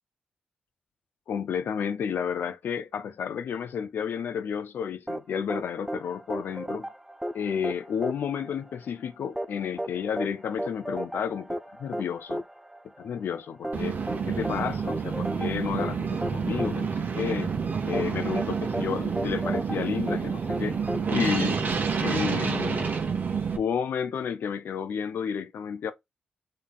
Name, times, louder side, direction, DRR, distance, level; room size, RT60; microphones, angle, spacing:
voice 1, 1.3-6.9 7.3-12.4 13.0-14.0 14.3-17.5 17.8-20.8 21.1-21.6 22.0-22.9 23.5-25.9, left 7 dB, 70° left, 0.4 m, -31 dB
sound 1, 5.1-21.9, right 1 dB, 10° right, 0.4 m, -36 dB
sound 2, 13.7-23.6, right 6 dB, 55° right, 0.9 m, -29 dB
3.8 x 3.5 x 2.3 m
supercardioid pair, 40°, 4 cm